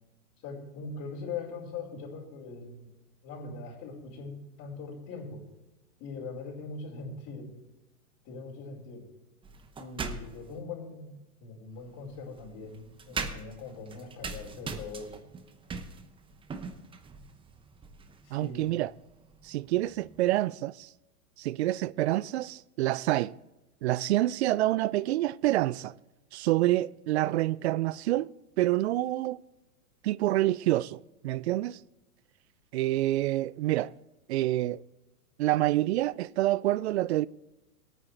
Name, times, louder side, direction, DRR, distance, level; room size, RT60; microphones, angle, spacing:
voice 1, 0.4-2.9 3.2-4.3 4.6-5.4 6.0-7.5 8.2-9.0 9.8-15.2 18.2-18.7, left 4 dB, 35° left, 4.8 m, -41 dB
sound 1, 9.4-10.6 11.7-20.4, right 4 dB, 10° right, 0.8 m, -42 dB
voice 2, 18.3-18.9 19.4-20.9 21.4-23.4 23.8-26.0 26.3-28.3 28.6-29.4 30.0-31.8 32.7-33.9 34.3-34.8 35.4-37.3, right 15 dB, 50° right, 0.4 m, -27 dB
22.0 x 9.3 x 3.3 m
hypercardioid pair, 120°, 45 cm